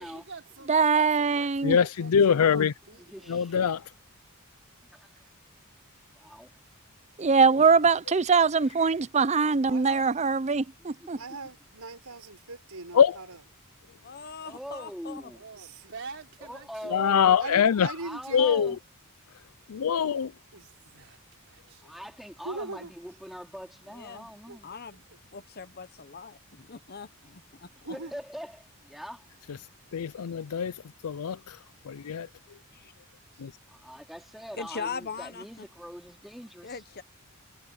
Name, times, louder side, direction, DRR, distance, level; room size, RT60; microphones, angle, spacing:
voice 1, 0.0-3.8 15.3-17.1 21.0-21.9, right 4 dB, 55° right, 5.4 m, -47 dB
voice 2, 0.7-1.8 7.2-11.2, right 5 dB, 30° right, 0.5 m, -22 dB
voice 3, 1.6-2.7 3.3-3.9 12.9-13.2 16.9-17.9 18.3-18.7 19.7-20.3 29.9-31.6 31.9-32.3 33.4-33.5, left 7 dB, 75° left, 0.4 m, -23 dB
voice 4, 2.9-3.6 4.8-5.3 6.1-6.5 11.0-11.4 14.4-15.4 16.4-17.2 18.0-18.8 21.8-24.7 27.7-29.2 33.7-36.8, equal, ahead, 4.0 m, -43 dB
voice 5, 9.7-10.1 11.2-13.4 15.5-15.9 17.4-18.8 20.5-21.1 22.4-22.9 24.5-24.8 27.8-28.2, right 3 dB, 85° right, 5.9 m, -40 dB
voice 6, 14.0-15.3 23.9-24.3 24.6-25.0 25.3-27.7 32.7-32.9 34.6-35.7 36.6-37.0, left 5 dB, 45° left, 1.0 m, -40 dB
head